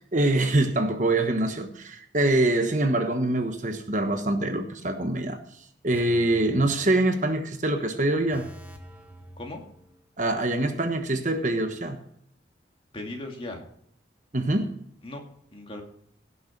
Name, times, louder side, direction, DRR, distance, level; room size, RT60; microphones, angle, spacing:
voice 1, 0.1-5.4 5.8-8.5 10.2-12.0 14.3-14.7, right 2 dB, 40° right, 1.2 m, -24 dB
voice 2, 5.9-6.3 9.4-9.6 12.9-13.6 15.0-15.2 15.5-15.8, left 2 dB, 30° left, 2.4 m, -38 dB
sound 1, 5.9-7.5 7.8-7.9 8.3-10.3 10.5-10.7, right 1 dB, 10° right, 1.4 m, -48 dB
17.0 x 6.9 x 6.0 m
head